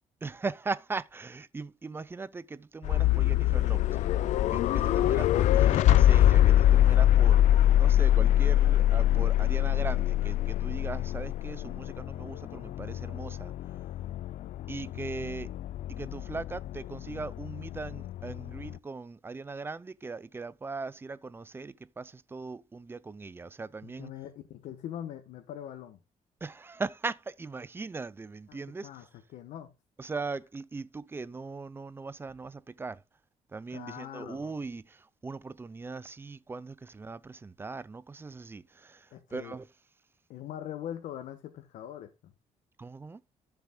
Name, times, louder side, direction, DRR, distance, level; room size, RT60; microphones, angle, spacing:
voice 1, 0.2-13.8 14.7-15.5 15.9-24.1 26.4-29.1 30.0-33.0 33.5-39.7 42.8-43.2, right 4 dB, 20° right, 0.5 m, -39 dB
sound 1, 2.8-18.8, left 12 dB, 70° left, 0.4 m, -24 dB
voice 2, 23.8-26.0 28.5-29.1 29.3-29.7 33.7-34.5 39.1-39.6 40.3-42.3, left 10 dB, 90° left, 1.3 m, -42 dB
13.0 x 7.0 x 2.3 m
cardioid pair, 135°, 13 cm